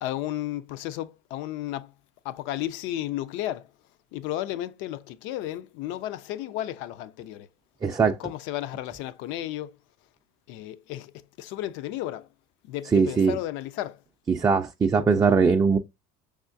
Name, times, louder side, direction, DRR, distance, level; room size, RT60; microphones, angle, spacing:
voice 1, 0.0-1.9 2.3-3.6 4.1-7.5 8.2-9.7 10.5-11.1 11.4-12.2 12.7-13.9, left 13 dB, 70° left, 0.5 m, -33 dB
voice 2, 7.8-8.2 12.8-13.4 14.3-15.8, right 5 dB, 20° right, 0.4 m, -21 dB
5.5 x 3.5 x 2.6 m
supercardioid pair, 110°, 20 cm